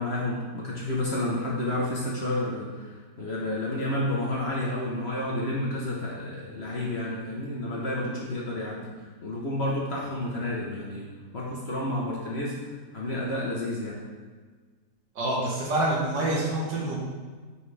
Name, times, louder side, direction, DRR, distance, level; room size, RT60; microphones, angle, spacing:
voice 1, 0.0-8.9 9.2-11.1 11.3-12.6 12.9-14.0, left 1 dB, 45° left, -4 dB, 0.9 m, -30 dB
voice 2, 15.2-17.0, right 1 dB, 80° right, -5 dB, 2.1 m, -26 dB
5.7 x 5.5 x 3.3 m, 1.4 s
omnidirectional pair, 1.9 m